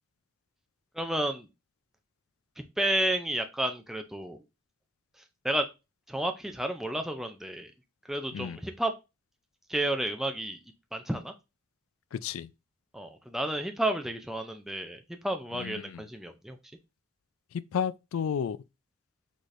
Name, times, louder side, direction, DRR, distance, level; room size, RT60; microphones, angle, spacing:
voice 1, 0.9-1.5 2.6-4.4 5.4-5.7 6.1-7.7 8.0-8.9 9.7-10.6 10.9-11.3 12.9-16.6, right 1 dB, ahead, 0.4 m, -31 dB
voice 2, 12.1-12.5 15.5-16.0 17.5-18.6, left 7 dB, 70° left, 0.3 m, -32 dB
4.8 x 4.2 x 2.5 m
head